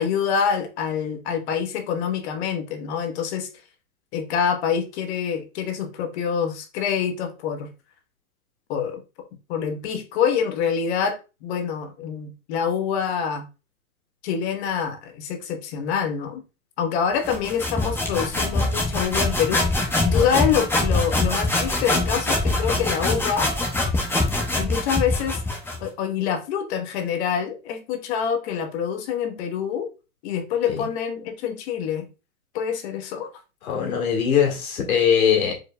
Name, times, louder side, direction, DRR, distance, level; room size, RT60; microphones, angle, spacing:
voice 1, 0.0-3.5 4.1-7.7 8.7-9.0 9.5-13.5 14.2-16.4 16.8-19.7 20.0-23.5 24.5-25.4 25.8-29.9 30.2-32.1 32.5-33.3, left 7 dB, 50° left, 1.1 m, -26 dB
sound 1, 17.2-25.8, left 2 dB, 5° left, 0.9 m, -23 dB
voice 2, 33.6-35.5, left 7 dB, 80° left, 2.0 m, -21 dB
4.8 x 4.4 x 2.2 m
hypercardioid pair, 130°, 42 cm